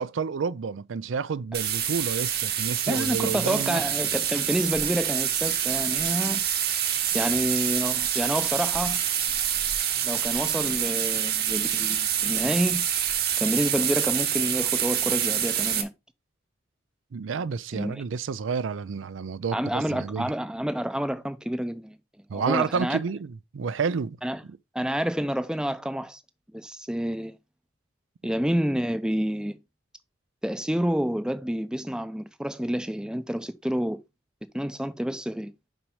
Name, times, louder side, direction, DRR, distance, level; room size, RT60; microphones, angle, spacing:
voice 1, 0.0-3.8 9.9-10.1 17.1-20.3 22.3-24.2, right 5 dB, 85° right, 0.4 m, -30 dB
sound 1, 1.5-15.8, right 9 dB, 55° right, 1.2 m, -26 dB
voice 2, 2.9-6.4 7.1-9.0 10.0-12.9 13.4-15.9 17.7-18.0 19.5-22.0 22.3-23.0 24.2-24.4 24.7-26.2 26.5-27.4 28.2-29.6 30.4-34.0 34.5-35.5, equal, 5° right, 0.5 m, -28 dB
6.0 x 5.3 x 4.7 m
head